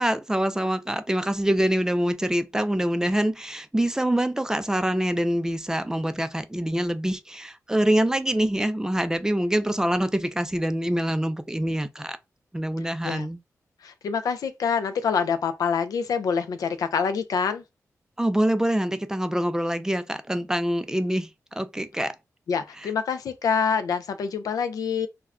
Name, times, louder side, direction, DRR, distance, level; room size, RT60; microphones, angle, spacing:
voice 1, 0.0-12.2 12.5-13.4 18.2-22.1 22.8-22.9, right 1 dB, 10° right, 0.4 m, -25 dB
voice 2, 13.8-17.6 22.5-25.1, left 6 dB, 90° left, 0.4 m, -26 dB
2.3 x 2.1 x 3.5 m
cardioid pair, 75°, 6 cm